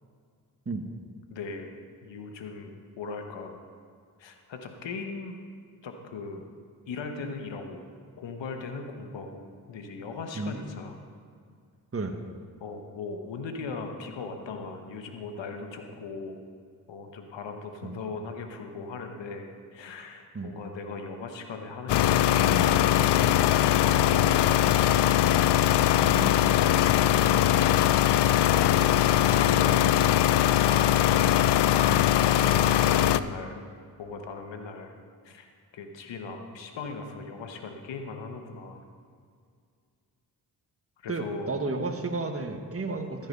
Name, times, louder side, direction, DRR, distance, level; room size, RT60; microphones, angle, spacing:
voice 1, 1.3-1.7 2.0-3.6 4.2-5.3 5.8-6.4 6.9-7.8 8.2-11.0 12.6-16.4 16.9-23.4 23.8-24.7 26.5-27.7 28.4-30.7 32.2-33.6 34.0-34.9 35.2-35.5 35.7-38.8 41.0-41.5, left 4 dB, 90° left, 5 dB, 1.2 m, -38 dB
sound 1, 21.9-33.2, left 12 dB, 70° left, 0.5 m, -21 dB
voice 2, 26.0-26.3 31.9-32.1 41.1-43.3, right 3 dB, 30° right, 5 dB, 1.4 m, -32 dB
14.0 x 7.9 x 5.4 m, 2.2 s
cardioid pair, 45°, 43 cm